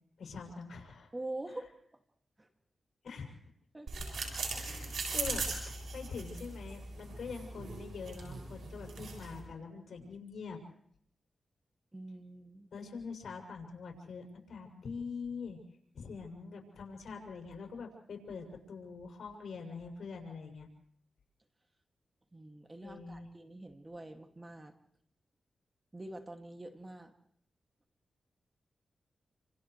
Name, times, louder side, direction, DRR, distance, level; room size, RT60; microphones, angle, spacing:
voice 1, 0.2-1.1 1.5-1.6 3.0-3.4 4.5-10.6 12.7-15.6 15.9-20.7 22.8-23.3, left 5 dB, 75° left, 2 dB, 7.0 m, -44 dB
voice 2, 1.1-1.7 2.4-2.5 3.7-3.9 11.9-12.7 22.3-24.7 25.9-27.1, right 1 dB, 25° right, 4 dB, 2.4 m, -45 dB
sound 1, 3.9-9.4, right 3 dB, 80° right, 6.9 m, -39 dB
29.5 x 27.5 x 3.3 m, 0.67 s
cardioid pair, 55°, 0 cm